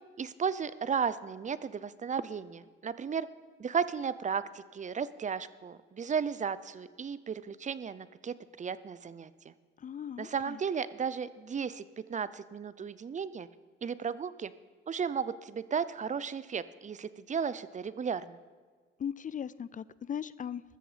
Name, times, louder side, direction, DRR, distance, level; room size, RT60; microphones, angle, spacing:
voice 1, 0.2-3.3 3.6-9.5 10.2-11.8 12.1-13.5 13.8-14.5 14.9-18.4, right 6 dB, 40° right, 16 dB, 0.7 m, -34 dB
voice 2, 9.8-10.6 19.0-20.6, left 8 dB, 40° left, 19 dB, 0.5 m, -38 dB
14.5 x 13.5 x 5.1 m, 1.5 s
cardioid pair, 90°, 20 cm